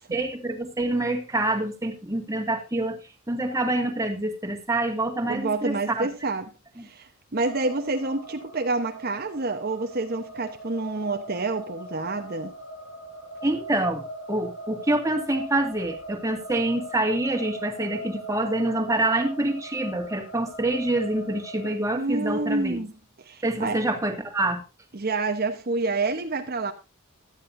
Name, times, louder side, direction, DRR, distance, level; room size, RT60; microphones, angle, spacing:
voice 1, 0.1-3.0 3.3-6.1 13.4-14.0 14.3-22.8 23.4-24.6, right 2 dB, 15° right, 1.9 m, -26 dB
voice 2, 5.3-6.5 6.8-12.5 22.0-22.9 23.2-23.8 24.9-26.7, right 3 dB, 45° right, 1.0 m, -28 dB
sound 1, 7.4-21.7, right 1 dB, 65° left, 4.8 m, -40 dB
16.5 x 12.0 x 2.6 m
head